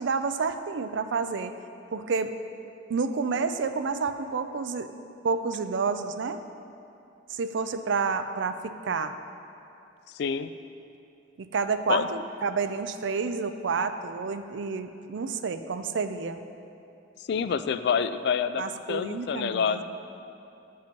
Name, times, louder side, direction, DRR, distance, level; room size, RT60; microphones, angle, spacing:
voice 1, 0.0-1.5 1.9-2.3 2.9-4.9 5.2-6.4 7.3-9.1 11.4-16.4 18.6-19.8, right 4 dB, 75° right, 9 dB, 0.4 m, -29 dB
voice 2, 10.1-10.5 11.9-12.1 17.2-19.8, left 6 dB, 60° left, 12 dB, 0.3 m, -27 dB
10.0 x 5.5 x 5.2 m, 2.7 s
head